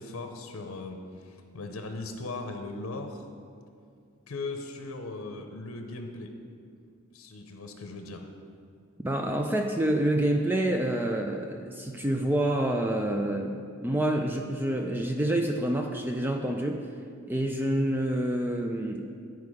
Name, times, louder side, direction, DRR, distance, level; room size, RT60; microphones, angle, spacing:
voice 1, 0.0-3.3 4.3-6.3 7.1-8.2, left 3 dB, 80° left, 5 dB, 0.7 m, -38 dB
voice 2, 9.0-16.8 17.3-19.0, right 1 dB, 10° right, 3 dB, 0.3 m, -27 dB
10.5 x 4.7 x 4.8 m, 2.3 s
head